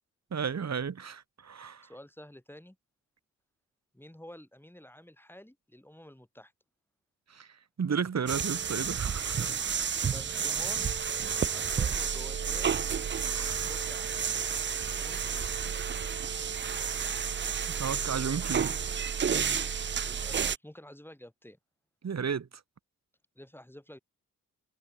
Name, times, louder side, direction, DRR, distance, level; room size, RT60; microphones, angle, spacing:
voice 1, 0.3-1.9 7.3-7.5 7.8-9.5 13.2-13.7 17.6-18.8 22.0-22.5, right 6 dB, 50° right, 1.8 m, -33 dB
voice 2, 1.8-2.8 3.9-6.5 10.1-10.9 11.5-12.9 13.6-14.5 14.9-15.5 20.0-21.6 23.4-24.0, left 1 dB, 5° left, 7.5 m, -49 dB
sound 1, 8.3-20.6, right 7 dB, 35° right, 0.6 m, -31 dB
cardioid pair, 55°, 35 cm